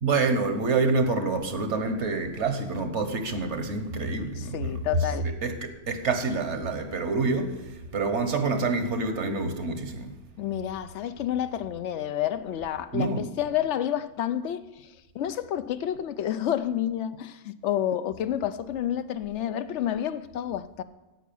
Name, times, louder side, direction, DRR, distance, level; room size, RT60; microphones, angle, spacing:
voice 1, 0.0-4.8 5.4-5.5 5.9-7.5 7.9-10.1 12.9-13.2, right 3 dB, 70° right, 1.4 m, -27 dB
voice 2, 4.3-5.3 10.4-20.8, left 11 dB, 75° left, 0.9 m, -30 dB
10.0 x 8.3 x 6.9 m
omnidirectional pair, 1.3 m